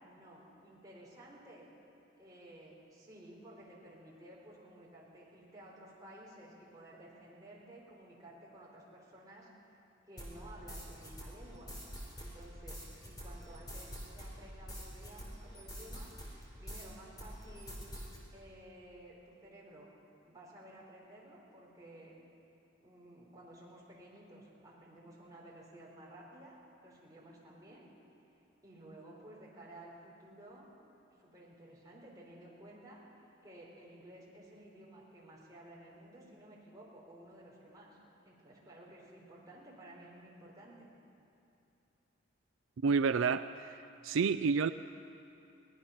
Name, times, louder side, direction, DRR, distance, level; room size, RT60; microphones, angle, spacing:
voice 1, 0.0-1.7 2.2-9.5 10.1-11.7 12.2-16.1 16.6-17.9 18.3-19.9 20.2-22.2 22.8-27.9 28.6-30.7 31.2-33.0 33.4-38.0 38.2-40.9, right 1 dB, 20° right, -5 dB, 4.5 m, -54 dB
sound 1, 10.2-16.9 17.2-18.2, equal, 20° left, 4.0 m, -46 dB
voice 2, 42.8-43.8 44.0-44.7, right 5 dB, 75° right, 12 dB, 0.4 m, -29 dB
23.0 x 18.5 x 6.0 m, 2.7 s
head